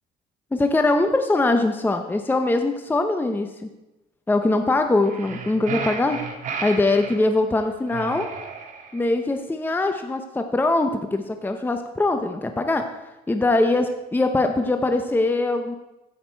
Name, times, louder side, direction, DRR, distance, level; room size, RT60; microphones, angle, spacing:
voice 1, 0.5-3.5 4.3-6.2 6.6-8.3 8.9-12.8 13.3-15.8, left 2 dB, 10° left, 6 dB, 0.7 m, -22 dB
sound 1, 5.0-7.2 7.9-9.1, right 5 dB, 50° right, 1.6 m, -33 dB
15.5 x 6.5 x 4.5 m, 1.0 s
cardioid pair, 110°, 17 cm